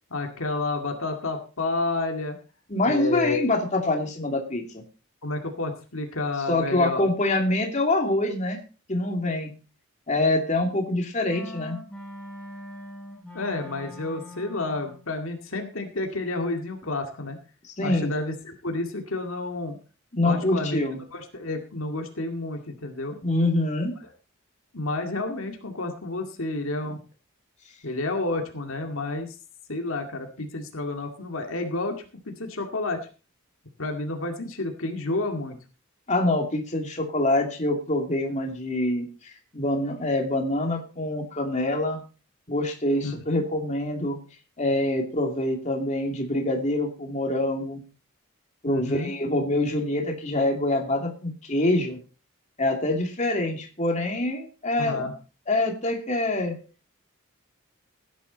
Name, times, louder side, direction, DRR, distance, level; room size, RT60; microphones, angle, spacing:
voice 1, 0.1-2.4 2.8-3.4 5.2-7.1 13.3-17.4 17.8-19.8 20.2-20.8 21.1-23.2 24.7-27.0 27.8-29.4 29.7-33.1 33.8-35.6 43.0-43.4 48.7-49.1 54.8-55.1, left 2 dB, 70° left, 3 dB, 2.2 m, -30 dB
voice 2, 2.7-4.6 6.5-8.6 8.9-9.5 10.1-11.8 17.7-18.1 20.1-21.0 23.2-23.9 36.1-42.0 42.5-44.2 44.6-47.8 48.6-52.0 52.6-55.1 55.5-56.6, left 2 dB, 35° left, 2 dB, 2.7 m, -25 dB
sound 1, 11.3-15.1, left 1 dB, 5° left, 6.9 m, -42 dB
16.0 x 10.5 x 4.1 m, 0.35 s
head